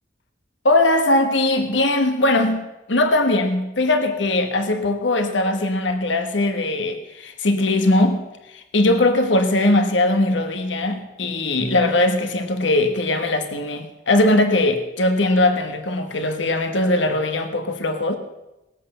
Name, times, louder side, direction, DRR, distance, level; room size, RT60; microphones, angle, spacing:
voice 1, 0.6-18.2, left 2 dB, 75° left, 7 dB, 1.2 m, -20 dB
19.5 x 8.3 x 6.6 m, 0.98 s
head